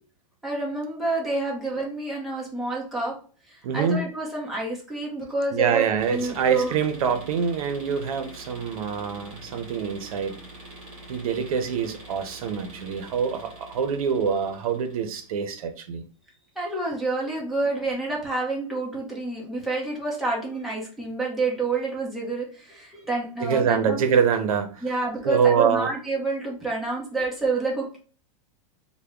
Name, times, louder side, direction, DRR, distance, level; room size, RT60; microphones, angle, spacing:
voice 1, 0.4-3.2 3.5-6.7 16.6-24.0 24.8-28.0, right 3 dB, ahead, -4 dB, 0.8 m, -28 dB
voice 2, 3.6-4.1 5.5-10.4 11.1-16.0 23.4-24.8 25.2-25.9, right 7 dB, 80° right, 7 dB, 0.7 m, -25 dB
sound 1, 6.0-15.4, right 1 dB, 30° right, 1.6 m, -45 dB
3.4 x 2.2 x 3.5 m, 0.39 s
supercardioid pair, 155°, 18 cm